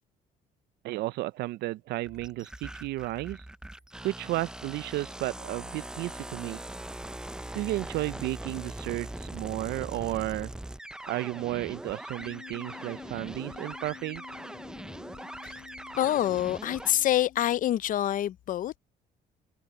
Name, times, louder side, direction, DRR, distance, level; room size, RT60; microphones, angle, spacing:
voice 1, 0.8-3.4 4.0-6.6 7.5-10.5 11.1-14.2, right 18 dB, 75° right, 0.5 m, -33 dB
sound 1, 2.0-16.9, right 1 dB, 5° right, 0.4 m, -41 dB
Wind instrument woodwind instrument, 12.2-17.8, left 12 dB, 70° left, 1.4 m, -50 dB
voice 2, 16.0-18.8, left 12 dB, 50° left, 0.5 m, -26 dB
cardioid pair, 110°, 17 cm